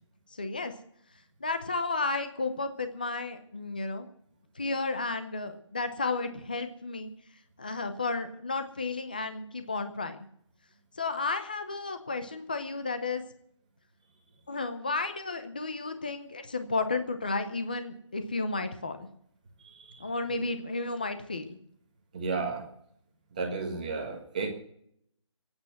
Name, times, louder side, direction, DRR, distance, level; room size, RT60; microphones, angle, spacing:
voice 1, 0.4-0.7 1.4-4.1 4.6-7.1 7.6-10.2 11.0-13.2 14.5-19.1 20.0-21.6, left 3 dB, 15° left, 9 dB, 0.7 m, -32 dB
voice 2, 19.6-20.1 22.1-22.6 23.3-24.5, right 4 dB, 15° right, 1 dB, 1.5 m, -33 dB
17.0 x 8.8 x 7.6 m, 0.70 s
hypercardioid pair, 180°, 16 cm